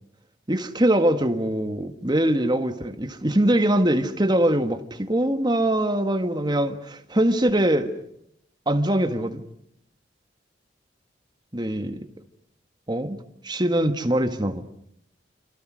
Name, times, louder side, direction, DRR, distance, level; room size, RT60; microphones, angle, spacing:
voice 1, 0.5-8.0 8.6-9.4 11.5-12.1 12.9-13.2 13.4-14.6, right 1 dB, 25° right, 1.7 m, -23 dB
28.0 x 27.0 x 6.3 m
head